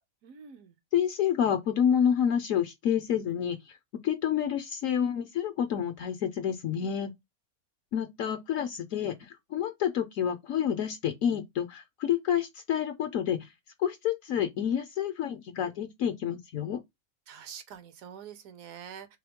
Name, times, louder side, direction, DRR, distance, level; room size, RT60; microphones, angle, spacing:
voice 1, 0.2-0.8 17.3-19.2, right 8 dB, 70° right, 1.1 m, -46 dB
voice 2, 0.9-3.8 4.0-7.1 7.9-13.5 13.8-16.8, left 9 dB, 70° left, 0.9 m, -28 dB
3.6 x 3.1 x 3.5 m
omnidirectional pair, 1.6 m